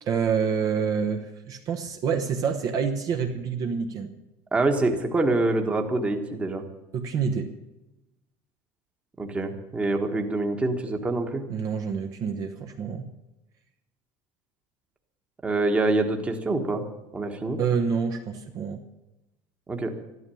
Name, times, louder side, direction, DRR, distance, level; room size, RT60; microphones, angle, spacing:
voice 1, 0.0-4.1 6.9-7.5 11.5-13.0 17.6-18.8, right 6 dB, 40° right, 4 dB, 1.1 m, -27 dB
voice 2, 4.5-6.6 9.2-11.4 15.4-16.8 17.1-17.6 19.7-19.9, right 2 dB, 10° right, 4 dB, 1.4 m, -25 dB
12.5 x 12.5 x 7.0 m, 0.99 s
cardioid pair, 165°, 10 cm